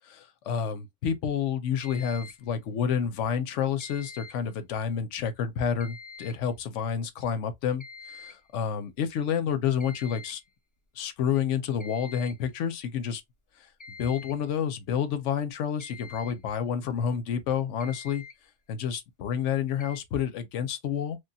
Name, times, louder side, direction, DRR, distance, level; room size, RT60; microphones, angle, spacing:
voice 1, 0.0-10.4 11.0-13.2 14.0-18.2 18.7-21.2, left 7 dB, 80° left, 0.9 m, -29 dB
sound 1, 1.8-2.5 3.8-4.5 5.8-6.5 7.8-8.5 9.8-10.5 11.8-12.5 13.8-14.5 15.8-16.4 17.5-17.6 17.8-18.4 19.8-20.0, left 4 dB, 15° left, 0.9 m, -46 dB
3.2 x 2.2 x 2.7 m
omnidirectional pair, 1.2 m